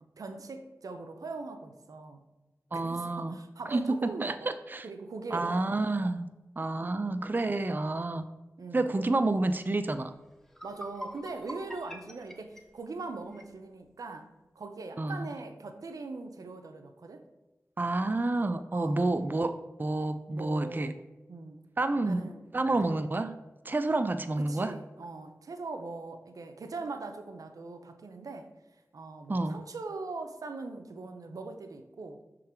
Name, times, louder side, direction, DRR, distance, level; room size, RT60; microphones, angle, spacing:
voice 1, 0.2-2.2 2.7-4.5 4.8-6.0 6.8-7.1 8.6-9.0 10.6-17.2 18.7-19.0 20.3-20.9 21.3-21.6 22.0-22.8 24.4-28.5 28.9-32.2, right 3 dB, 85° right, 7 dB, 0.6 m, -41 dB
voice 2, 2.7-3.3 3.7-4.9 5.3-6.3 6.6-8.3 8.7-10.1 15.0-15.3 17.8-21.0 21.8-23.3 23.6-24.8 29.3-29.6, right 2 dB, 35° right, 9 dB, 0.4 m, -29 dB
sound 1, 10.4-13.5, equal, 5° left, 0.8 m, -45 dB
6.4 x 3.8 x 4.3 m, 1.0 s
cardioid pair, 45°, 6 cm